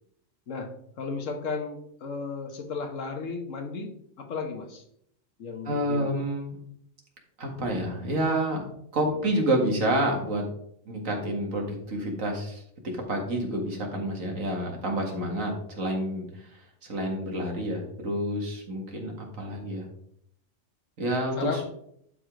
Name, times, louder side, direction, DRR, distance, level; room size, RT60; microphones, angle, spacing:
voice 1, 0.5-3.9 4.2-4.8 5.4-6.2 9.2-9.4 21.4-21.7, left 4 dB, 70° left, 5 dB, 1.6 m, -34 dB
voice 2, 5.6-6.6 7.4-10.5 10.9-12.6 13.1-19.9 21.0-21.6, right 1 dB, 85° right, 1 dB, 2.2 m, -29 dB
11.5 x 5.0 x 3.8 m, 0.71 s
omnidirectional pair, 1.4 m